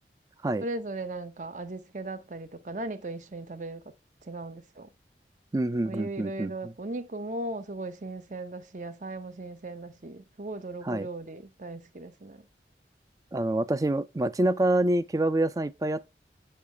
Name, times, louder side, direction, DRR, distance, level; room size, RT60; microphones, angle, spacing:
voice 1, 0.6-3.8 4.2-4.9 5.8-12.4, right 2 dB, 45° right, 0.7 m, -37 dB
voice 2, 5.5-6.7 10.8-11.1 13.3-16.1, right 1 dB, 20° right, 0.3 m, -26 dB
6.7 x 6.4 x 3.3 m
head